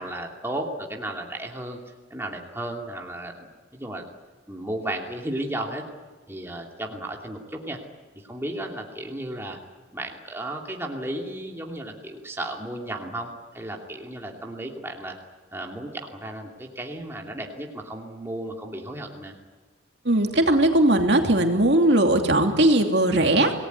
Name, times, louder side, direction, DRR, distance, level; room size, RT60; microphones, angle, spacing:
voice 1, 0.0-1.8 2.1-4.1 4.5-5.8 6.3-7.8 8.1-9.6 9.9-15.2 15.5-19.3, right 1 dB, 10° right, 0 dB, 2.8 m, -34 dB
voice 2, 20.0-23.5, right 1 dB, 55° right, 4 dB, 2.8 m, -19 dB
27.5 x 19.0 x 9.4 m, 1.4 s
head